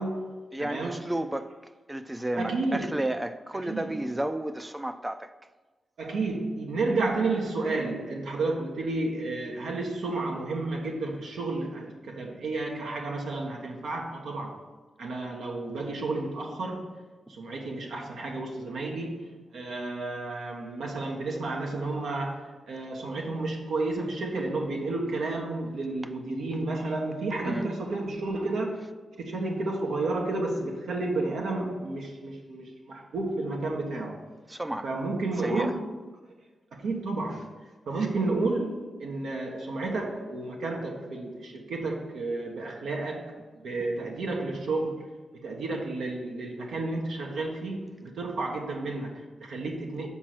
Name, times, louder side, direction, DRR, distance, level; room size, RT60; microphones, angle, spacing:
voice 1, 0.0-1.0 2.4-2.9 3.7-3.9 6.0-14.6 15.0-28.9 29.2-34.4 34.8-35.9 36.7-37.5 37.9-50.1, right 2 dB, 85° right, 1.2 m, -31 dB
voice 2, 0.5-5.3 17.3-17.4 27.4-27.7 34.5-34.9 35.4-35.8, right 1 dB, 15° right, 0.5 m, -32 dB
6.2 x 5.1 x 6.0 m
cardioid pair, 55°, 0 cm